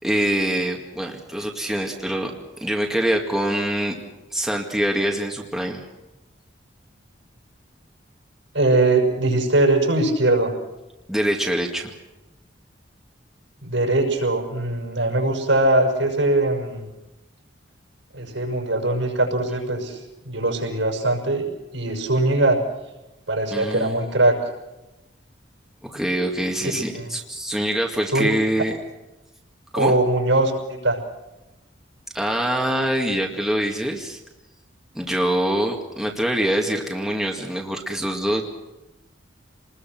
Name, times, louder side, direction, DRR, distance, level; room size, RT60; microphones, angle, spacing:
voice 1, 0.0-4.0 4.3-5.8 11.1-11.9 23.5-24.2 25.8-28.8 29.7-30.0 32.1-34.2 34.9-38.4, right 1 dB, ahead, 0 dB, 2.1 m, -24 dB
voice 2, 8.5-10.5 13.6-16.9 18.1-20.0 20.2-22.6 23.3-24.4 26.9-27.1 28.1-28.3 29.7-31.0, right 2 dB, 80° right, 2 dB, 6.2 m, -21 dB
28.5 x 20.5 x 6.1 m, 0.99 s
head